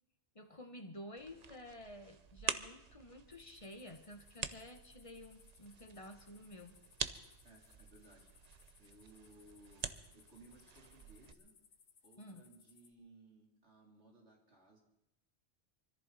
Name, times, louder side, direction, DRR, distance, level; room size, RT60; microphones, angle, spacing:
voice 1, 0.3-6.8 12.2-12.4, left 1 dB, 30° left, 6 dB, 1.3 m, -52 dB
sound 1, 1.2-11.3, right 6 dB, 45° right, 0.7 m, -47 dB
sound 2, 3.3-12.9, left 6 dB, 75° left, 1.2 m, -66 dB
voice 2, 7.4-8.3 8.8-11.5 12.0-14.8, right 2 dB, 85° right, -1 dB, 3.8 m, -62 dB
24.0 x 14.5 x 4.1 m, 0.88 s
omnidirectional pair, 1.1 m